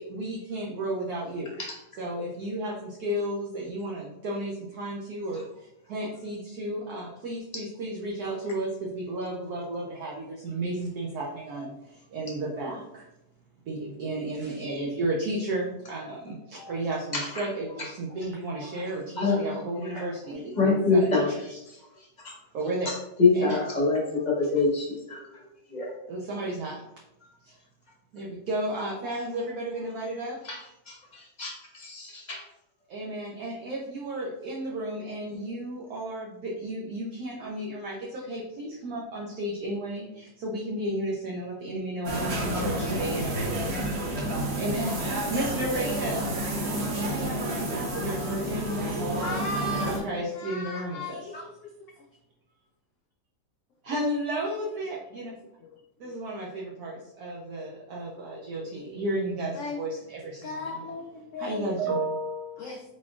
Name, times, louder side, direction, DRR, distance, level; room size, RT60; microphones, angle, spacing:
voice 1, 0.0-1.6 2.0-13.1 13.7-21.1 21.4-21.6 22.5-22.9 23.3-23.6 26.1-26.8 27.4-27.6 28.1-30.4 32.9-43.9 44.2-44.3 44.6-46.4 47.0-49.4 49.8-51.2 53.8-55.3 56.0-60.7 61.4-62.7, right 1 dB, 70° right, -3 dB, 1.2 m, -33 dB
voice 2, 17.1-17.5 18.8-18.9 19.2-19.5 19.9-20.0 20.6-21.3 21.7-22.3 22.9-25.9 30.4-30.6 31.4-32.4, left 3 dB, 35° left, -2 dB, 0.8 m, -26 dB
sound 1, 42.0-50.0, right 1 dB, 50° right, 0.9 m, -30 dB
voice 3, 47.4-47.9 48.5-50.1 50.3-51.7 52.0-52.1 55.6-55.8 56.0-56.2 58.1-58.7 59.5-59.8 60.4-61.8 62.6-62.8, left 2 dB, 75° left, 2 dB, 0.7 m, -37 dB
4.3 x 4.2 x 2.4 m, 0.87 s
omnidirectional pair, 1.8 m